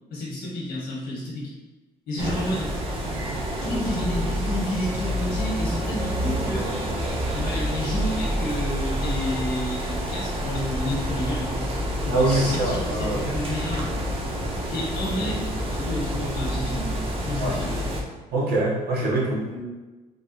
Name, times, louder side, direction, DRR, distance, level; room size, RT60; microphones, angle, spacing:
voice 1, 0.1-1.5 2.1-2.7 3.6-6.8 7.3-11.7 12.0-13.9 14.7-15.5 15.7-16.9 17.2-17.7 19.4-19.6, left 1 dB, 80° left, -5 dB, 1.2 m, -30 dB
sound 1, 2.2-18.0, equal, 35° right, 0.6 m, -28 dB
voice 2, 12.1-13.3 17.4-17.6 18.3-19.4, right 2 dB, 70° right, -5 dB, 0.9 m, -24 dB
3.5 x 2.3 x 2.7 m, 1.2 s
cardioid pair, 110°, 17 cm